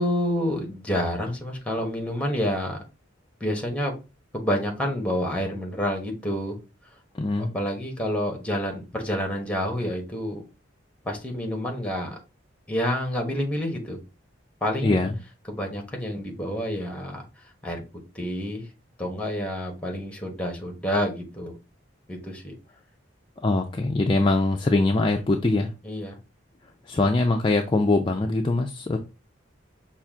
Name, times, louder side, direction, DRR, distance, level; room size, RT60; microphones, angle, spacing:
voice 1, 0.0-2.8 3.4-3.9 4.3-6.6 7.4-10.4 11.0-12.1 12.7-14.0 14.6-15.0 15.5-17.2 17.6-17.8 18.1-18.7 19.0-21.5 22.1-22.5 25.8-26.2, equal, 5° left, 2 dB, 1.2 m, -28 dB
voice 2, 7.1-7.5 14.8-15.2 23.4-25.7 26.9-29.0, left 2 dB, 25° left, 3 dB, 0.4 m, -22 dB
5.7 x 2.5 x 3.5 m, 0.29 s
head